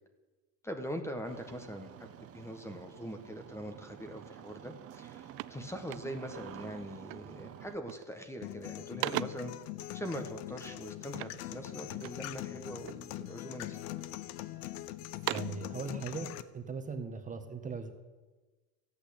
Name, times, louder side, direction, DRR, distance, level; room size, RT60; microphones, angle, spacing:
voice 1, 0.6-9.5 9.9-13.8, equal, 5° left, 6 dB, 1.4 m, -42 dB
Engine starting, 1.2-7.8, right 10 dB, 40° right, 1.0 m, -50 dB
sound 1, 4.4-4.6 4.9-6.5 7.1-7.4 7.7-8.2 8.6-9.6 11.1-12.3 12.8-13.5 14.0-14.6 15.0-15.7, right 21 dB, 80° right, 0.5 m, -40 dB
sound 2, 8.4-16.4, left 15 dB, 75° left, 0.9 m, -42 dB
voice 2, 15.3-17.9, right 4 dB, 20° right, 6 dB, 1.5 m, -39 dB
14.0 x 8.6 x 8.5 m, 1.3 s
cardioid pair, 130°, 36 cm